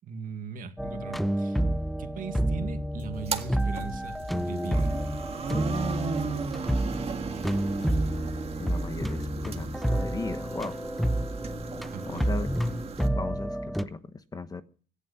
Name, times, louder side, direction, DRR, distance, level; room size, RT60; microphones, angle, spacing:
voice 1, 0.0-1.6 2.0-4.9 11.9-12.4, right 6 dB, 55° right, 2.1 m, -39 dB
sound 1, 0.8-13.8, right 1 dB, ahead, 0.7 m, -29 dB
sound 2, 3.0-3.6 3.9-4.4 4.6-4.8 7.8-7.9, left 3 dB, 45° left, 4.6 m, -47 dB
sound 3, 3.1-13.1, right 6 dB, 35° right, 1.8 m, -36 dB
voice 2, 8.6-10.8 12.1-12.5 13.1-14.0 14.3-14.6, left 4 dB, 20° left, 1.0 m, -36 dB
17.5 x 11.5 x 5.7 m
cardioid pair, 110°, 17 cm